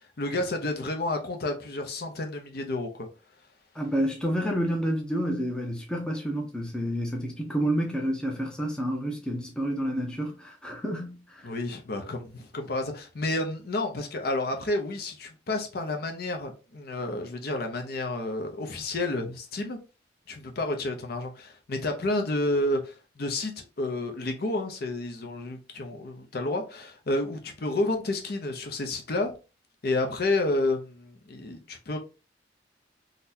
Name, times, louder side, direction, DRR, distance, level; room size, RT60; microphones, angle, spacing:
voice 1, 0.2-3.1 11.4-19.8 20.3-29.3 29.8-32.0, left 2 dB, 55° left, 0.6 m, -30 dB
voice 2, 3.8-11.4, equal, 5° left, 0.6 m, -29 dB
3.9 x 2.1 x 2.7 m
head